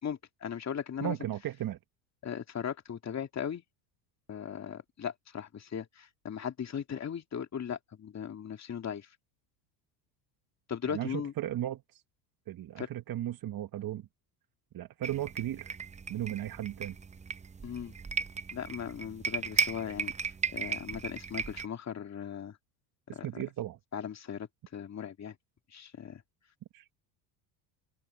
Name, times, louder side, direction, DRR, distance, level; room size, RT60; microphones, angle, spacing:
voice 1, 0.0-1.2 2.2-3.6 4.3-9.1 10.7-11.3 12.8-12.9 17.6-17.9 18.5-22.6 23.1-23.4 23.9-25.4 25.7-26.2, left 8 dB, 30° left, 2.6 m, -38 dB
voice 2, 1.0-1.8 10.8-12.0 12.5-14.1 14.7-15.8 16.1-17.0 23.1-23.8 26.7-26.9, right 12 dB, 45° right, 1.5 m, -36 dB
sound 1, 15.0-21.7, right 5 dB, 15° right, 0.7 m, -36 dB
open air
supercardioid pair, 90°, 50 cm